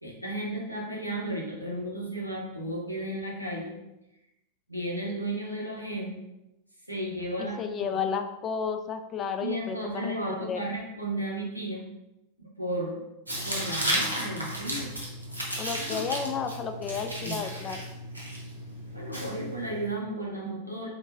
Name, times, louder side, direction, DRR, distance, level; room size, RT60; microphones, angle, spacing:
voice 1, 0.0-3.7 4.7-6.2 6.9-8.0 9.4-11.8 12.4-13.0 13.4-14.9 15.8-16.0 17.2-17.4 18.9-20.9, right 1 dB, 90° left, -3 dB, 0.8 m, -34 dB
voice 2, 7.4-9.8 10.0-10.6 15.6-17.8, left 6 dB, 25° left, 6 dB, 0.3 m, -32 dB
Tearing, 13.3-19.9, right 1 dB, 85° right, 0.7 m, -34 dB
3.6 x 2.9 x 2.5 m, 0.92 s
figure-of-eight pair, 90°, 0 cm